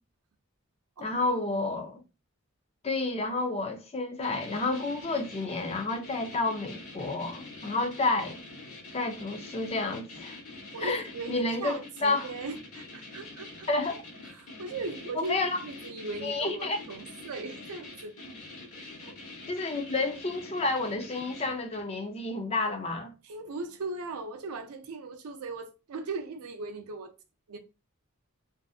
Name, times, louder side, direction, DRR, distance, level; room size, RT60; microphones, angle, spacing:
voice 1, 1.0-2.0 2.8-8.4 8.9-10.4 10.8-12.3 13.7-14.0 15.2-15.6 16.2-16.8 19.5-23.1, left 2 dB, 25° left, 0.4 m, -30 dB
sound 1, 4.2-22.0, left 2 dB, 80° left, 1.1 m, -45 dB
voice 2, 10.7-13.7 14.3-18.2 19.0-19.2 23.2-27.1 27.5-27.6, right 3 dB, 80° right, 0.5 m, -38 dB
2.6 x 2.4 x 2.3 m
head